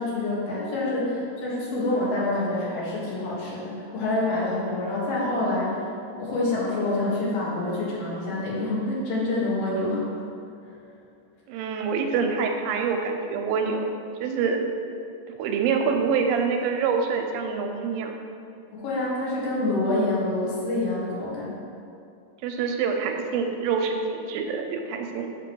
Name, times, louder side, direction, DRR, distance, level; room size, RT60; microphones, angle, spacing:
voice 1, 0.0-5.9 6.2-10.1 18.7-21.6, left 2 dB, 75° left, -6 dB, 3.1 m, -27 dB
voice 2, 11.5-13.9 14.2-14.6 15.4-18.2 22.4-25.3, right 5 dB, 85° right, 3 dB, 2.3 m, -26 dB
8.1 x 3.0 x 6.1 m, 2.5 s
omnidirectional pair, 4.1 m